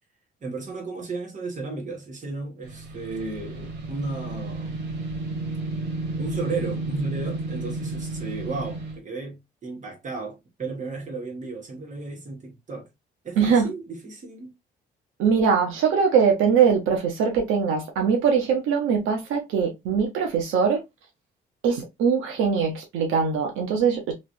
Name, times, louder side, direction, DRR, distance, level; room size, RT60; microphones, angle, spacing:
voice 1, 0.4-4.8 6.2-12.9 13.2-14.5, right 3 dB, 40° right, 1.6 m, -34 dB
sound 1, 2.6-9.0, right 2 dB, 65° right, 1.4 m, -32 dB
voice 2, 13.4-13.7 15.2-20.8 21.6-24.1, right 6 dB, 90° right, 0.8 m, -22 dB
3.2 x 3.0 x 2.6 m
cardioid pair, 90°, 20 cm